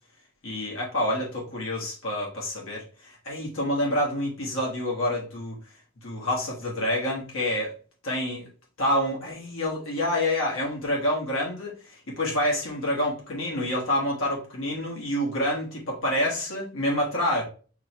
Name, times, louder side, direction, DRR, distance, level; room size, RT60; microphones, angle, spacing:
voice 1, 0.4-5.6 6.0-7.7 8.0-8.5 8.8-17.4, left 1 dB, 75° left, -3 dB, 1.3 m, -27 dB
5.6 x 2.2 x 2.9 m, 0.39 s
head